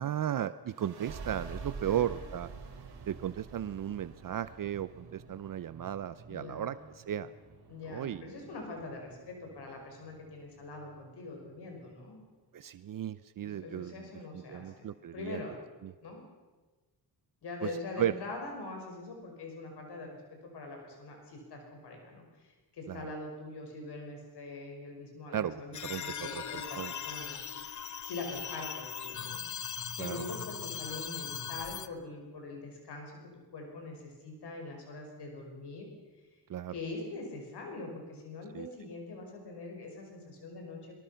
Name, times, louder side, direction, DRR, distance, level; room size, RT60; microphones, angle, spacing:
voice 1, 0.0-2.5 3.1-7.3 7.8-8.3 12.5-15.4 15.8-15.9 17.6-17.7 18.0-18.2 22.9-23.1 25.3-26.9 30.0-30.2 36.5-36.7 38.5-38.7, right 10 dB, 55° right, 15 dB, 0.6 m, -35 dB
sound 1, 0.7-12.0, right 4 dB, 70° right, 3.3 m, -48 dB
voice 2, 6.3-6.7 7.7-12.2 13.4-14.9 15.1-15.6 16.0-16.2 17.4-27.4 28.1-29.4 30.0-33.1 33.5-35.9 36.7-41.0, left 3 dB, 80° left, 2 dB, 5.5 m, -43 dB
sound 2, 25.7-31.9, left 8 dB, 50° left, 1.0 m, -39 dB
23.5 x 23.0 x 5.7 m, 1.2 s
wide cardioid pair, 135°, 40 cm